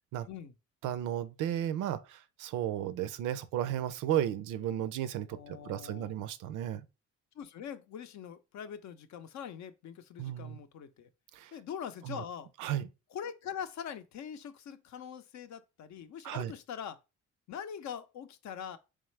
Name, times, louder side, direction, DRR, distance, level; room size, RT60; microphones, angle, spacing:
voice 1, 0.8-6.8 10.2-10.6 11.3-11.5 12.0-12.2 12.6-12.9 16.2-16.5, right 11 dB, 90° right, 0.5 m, -34 dB
voice 2, 5.3-6.1 7.3-11.1 11.5-12.5 13.1-17.0 17.5-18.8, left 8 dB, 65° left, 0.6 m, -43 dB
3.6 x 3.2 x 3.2 m
cardioid pair, 90°, 30 cm